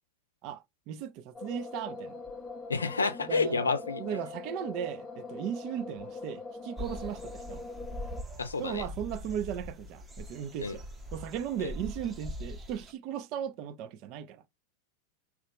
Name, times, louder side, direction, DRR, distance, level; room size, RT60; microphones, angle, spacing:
voice 1, 0.4-2.2 3.3-3.6 4.0-7.6 8.6-14.4, right 9 dB, 40° right, 0.4 m, -37 dB
sound 1, 1.3-8.2, left 3 dB, 20° left, 0.6 m, -42 dB
voice 2, 2.7-4.0 8.4-8.8 10.6-10.8 11.6-11.7, left 4 dB, 75° left, 0.5 m, -29 dB
sound 2, 6.8-12.9, equal, 15° right, 0.7 m, -42 dB
3.0 x 2.4 x 3.3 m
figure-of-eight pair, 90°, 0 cm